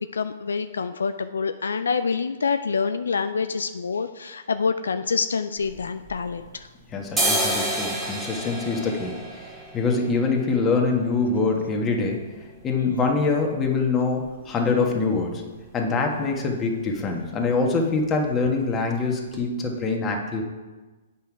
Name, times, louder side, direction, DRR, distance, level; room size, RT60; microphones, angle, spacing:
voice 1, 0.1-6.7, left 5 dB, 80° left, 10 dB, 0.4 m, -26 dB
sound 1, 5.6-6.6 7.0-14.7 15.0-15.1 15.4-15.9 16.2-16.5 16.7-17.0 17.2-18.0 18.3-18.5 18.9-19.0 19.3-19.4, right 1 dB, 15° right, 1.9 m, -31 dB
voice 2, 6.9-9.2 9.7-12.3 12.6-15.4 15.7-20.4, left 4 dB, 20° left, 1 dB, 1.4 m, -24 dB
8.4 x 5.7 x 4.7 m, 1.3 s
hypercardioid pair, 125°, 0 cm